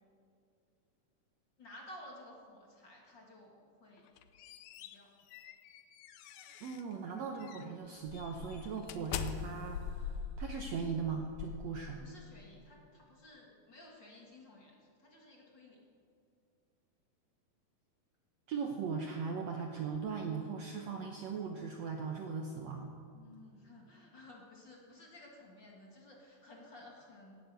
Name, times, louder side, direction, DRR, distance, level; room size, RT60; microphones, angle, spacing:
voice 1, 1.6-4.1 4.8-5.1 11.9-15.8 23.1-27.3, left 1 dB, 40° left, -2 dB, 2.2 m, -55 dB
sound 1, 4.0-6.9 7.4-7.6 8.1-12.3, left 7 dB, 75° left, 1.7 m, -43 dB
voice 2, 6.6-12.0 18.5-22.9, right 5 dB, 70° right, 3 dB, 1.7 m, -39 dB
18.0 x 9.8 x 8.1 m, 2.4 s
omnidirectional pair, 4.1 m